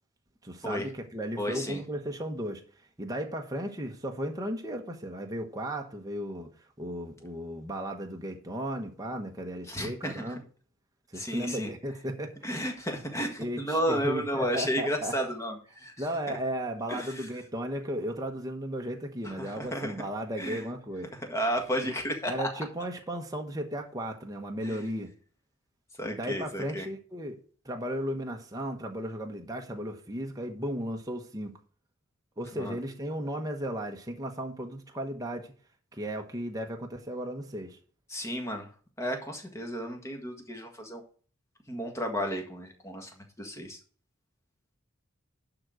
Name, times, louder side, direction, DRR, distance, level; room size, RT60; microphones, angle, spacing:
voice 1, 0.4-2.6 3.0-6.5 6.8-10.4 11.1-12.5 13.4-15.2 16.0-21.1 21.8-21.9 22.3-25.1 26.0-27.4 27.6-31.5 32.4-35.5 35.9-37.8, equal, 15° right, 1.0 m, -35 dB
voice 2, 1.4-1.8 9.7-10.3 11.1-11.7 12.4-15.9 16.3-16.4 16.9-17.3 19.2-19.9 20.4-20.6 21.3-22.5 24.6-24.8 26.0-26.9 32.5-32.8 38.1-38.7 39.0-41.0 41.7-43.1 43.4-43.8, equal, 15° left, 1.7 m, -32 dB
11.5 x 3.9 x 6.3 m
head